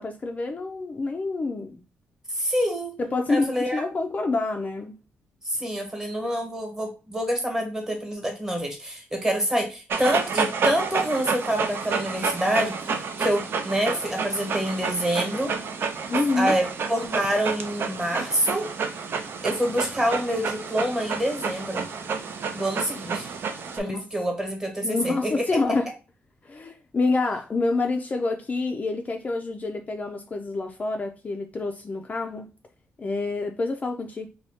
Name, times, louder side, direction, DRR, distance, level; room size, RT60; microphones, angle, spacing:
voice 1, 0.0-1.8 3.0-5.0 16.1-16.6 23.8-24.1 24.8-25.9 26.4-32.5 33.0-34.3, left 3 dB, 35° left, 0.4 m, -27 dB
voice 2, 2.3-3.0 3.3-3.9 5.4-12.8 13.2-15.5 16.4-18.7 19.4-21.8 22.5-23.3 23.7-25.4, equal, 15° right, 1.1 m, -26 dB
Dog, 9.9-23.8, right 5 dB, 60° right, 0.4 m, -30 dB
2.7 x 2.3 x 3.4 m
cardioid pair, 80°, 4 cm